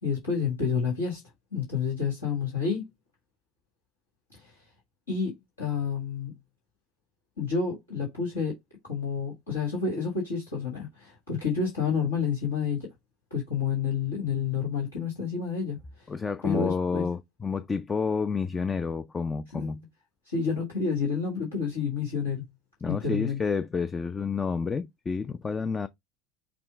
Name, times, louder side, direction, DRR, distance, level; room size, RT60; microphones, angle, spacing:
voice 1, 0.0-1.2 1.5-2.9 4.3-4.6 5.1-6.4 7.4-8.6 8.8-12.9 13.3-16.1 16.4-17.1 19.5-19.7 20.2-22.5 22.8-23.4, left 6 dB, 80° left, 1.6 m, -29 dB
voice 2, 16.1-19.8 22.8-25.9, left 5 dB, 20° left, 0.4 m, -29 dB
6.0 x 2.1 x 3.5 m
figure-of-eight pair, 65°, 0 cm